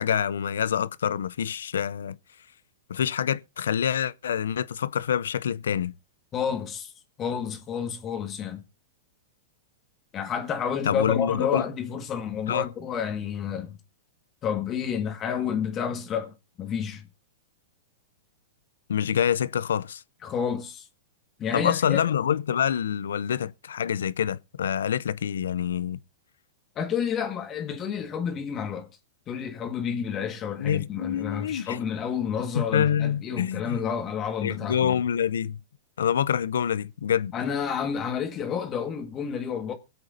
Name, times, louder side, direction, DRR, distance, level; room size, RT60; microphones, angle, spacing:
voice 1, 0.0-2.2 2.9-5.9 10.9-11.6 12.5-12.7 18.9-20.0 21.5-26.0 30.6-31.8 32.5-33.8 34.4-35.6 36.0-37.3, left 9 dB, 80° left, 0.5 m, -26 dB
voice 2, 6.3-6.9 7.2-8.6 10.1-13.8 14.4-17.1 20.2-20.9 21.4-22.0 26.7-28.9 29.3-35.0 37.3-39.7, left 7 dB, 30° left, 1.6 m, -30 dB
22.5 x 8.0 x 2.6 m
hypercardioid pair, 120°, 0 cm